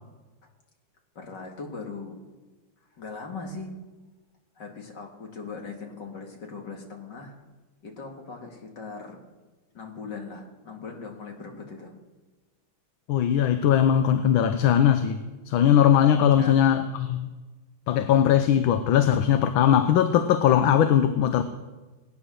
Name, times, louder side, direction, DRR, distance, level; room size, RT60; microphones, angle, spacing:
voice 1, 1.2-2.2 3.0-3.8 4.6-7.4 7.8-9.2 9.7-11.9 16.1-16.6, left 4 dB, 55° left, 2 dB, 2.6 m, -39 dB
voice 2, 13.1-15.2 15.5-17.3 17.9-21.4, left 9 dB, 75° left, 9 dB, 1.5 m, -20 dB
19.5 x 9.4 x 6.3 m, 1.2 s
omnidirectional pair, 2.2 m